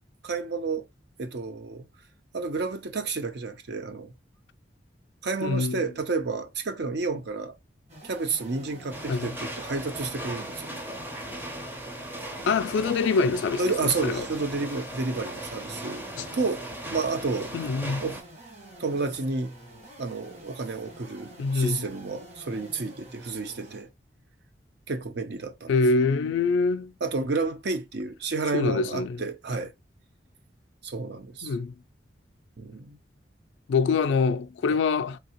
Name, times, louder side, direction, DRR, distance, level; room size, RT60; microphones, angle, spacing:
voice 1, 0.2-0.9 1.2-1.9 2.3-4.1 5.2-7.6 8.0-10.8 13.6-16.1 16.3-16.6 16.9-17.5 18.0-18.2 18.8-19.6 20.0-23.9 24.9-25.7 27.0-29.7 30.8-31.6 32.6-33.0, right 3 dB, 65° right, 0.7 m, -30 dB
voice 2, 5.4-5.8 9.1-9.3 12.5-14.3 16.2-16.3 17.5-18.0 21.4-21.9 25.7-26.9 28.5-29.2 31.4-31.7 33.7-35.2, left 4 dB, 75° left, 0.3 m, -25 dB
sound 1, 7.9-23.9, right 1 dB, 40° right, 1.5 m, -48 dB
sound 2, 8.9-18.2, right 1 dB, 10° right, 0.6 m, -38 dB
3.3 x 2.8 x 2.9 m
head